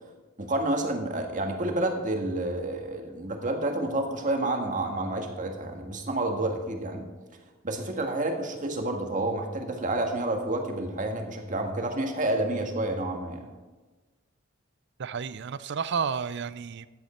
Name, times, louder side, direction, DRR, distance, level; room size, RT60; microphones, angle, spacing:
voice 1, 0.4-7.1 7.6-13.5, right 2 dB, 40° right, 3 dB, 1.6 m, -29 dB
voice 2, 15.0-16.9, right 6 dB, 60° right, 16 dB, 0.5 m, -31 dB
13.5 x 9.4 x 4.4 m, 1.2 s
head